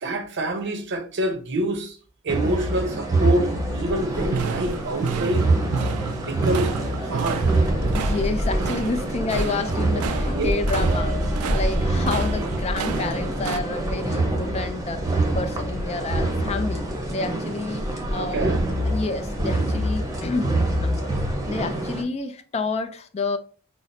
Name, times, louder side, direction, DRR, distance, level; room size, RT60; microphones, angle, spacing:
voice 1, 0.0-2.0 2.2-5.5 6.2-6.8 7.0-7.4 10.3-10.5 18.2-18.6, right 1 dB, 55° right, 0.7 m, -26 dB
sound 1, 2.3-22.0, right 1 dB, 15° right, 0.8 m, -25 dB
sound 2, 4.0-13.6, right 6 dB, 85° right, 0.3 m, -32 dB
voice 2, 7.9-11.2 11.5-20.5 20.8-21.1 21.5-23.4, left 3 dB, 30° left, 0.4 m, -29 dB
5.8 x 2.0 x 2.6 m
head